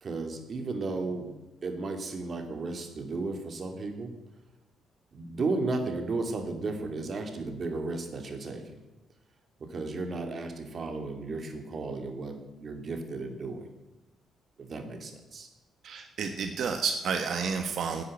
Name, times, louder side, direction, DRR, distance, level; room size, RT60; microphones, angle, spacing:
voice 1, 0.0-1.4 1.6-4.1 5.1-8.8 9.6-13.7 14.6-15.5, right 3 dB, 45° right, 5 dB, 2.7 m, -34 dB
voice 2, 15.8-18.0, right 5 dB, 65° right, 6 dB, 1.3 m, -30 dB
10.5 x 9.6 x 9.0 m, 1.1 s
cardioid pair, 90°, 0 cm